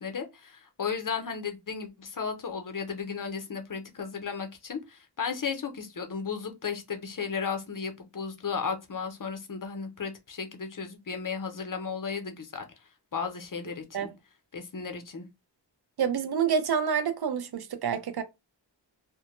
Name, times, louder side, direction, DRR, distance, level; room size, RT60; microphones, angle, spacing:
voice 1, 0.0-12.7 13.1-14.1 14.5-15.3, left 5 dB, 45° left, 0.6 m, -34 dB
voice 2, 16.0-18.2, right 7 dB, 60° right, 0.5 m, -27 dB
2.1 x 2.1 x 2.9 m
wide cardioid pair, 50°, 44 cm